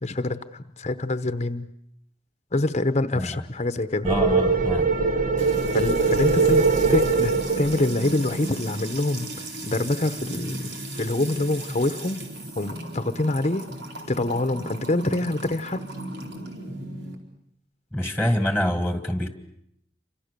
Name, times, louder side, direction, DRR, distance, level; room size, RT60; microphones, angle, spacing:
voice 1, 0.0-1.7 2.5-4.1 5.7-10.7 11.0-12.2 12.6-13.7 14.1-15.8, left 2 dB, 40° left, 11 dB, 1.0 m, -26 dB
voice 2, 4.0-4.9 17.9-19.3, equal, 5° right, 7 dB, 2.1 m, -25 dB
sound 1, 4.0-8.5, right 4 dB, 50° right, 1.4 m, -22 dB
Music / Water tap faucet / Trickle dribble, 5.4-17.1, right 1 dB, 90° right, 4.4 m, -36 dB
29.0 x 26.0 x 6.8 m, 0.71 s
head